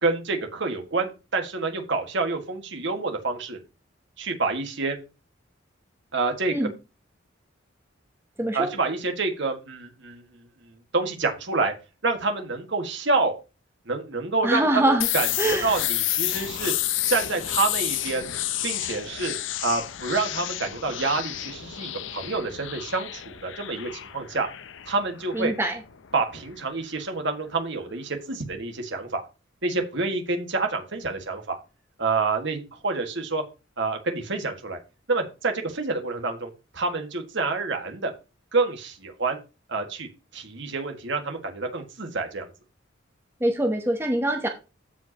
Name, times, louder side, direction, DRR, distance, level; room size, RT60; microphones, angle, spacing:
voice 1, 0.0-3.6 4.2-5.0 6.1-6.5 8.5-10.4 10.9-11.7 12.0-13.3 13.9-16.7 17.1-18.3 18.6-19.3 19.6-24.5 24.9-25.5 26.1-29.3 29.6-31.6 32.0-33.4 33.8-34.8 35.1-38.1 38.5-39.4 39.7-42.5, right 3 dB, 65° right, 4 dB, 1.8 m, -28 dB
voice 2, 8.4-8.7 14.4-15.1 15.4-15.7 25.3-25.8 43.4-44.5, right 1 dB, 10° right, 4 dB, 1.0 m, -23 dB
sound 1, 15.0-26.6, left 13 dB, 70° left, 0.6 m, -30 dB
15.0 x 5.1 x 2.9 m, 0.29 s
head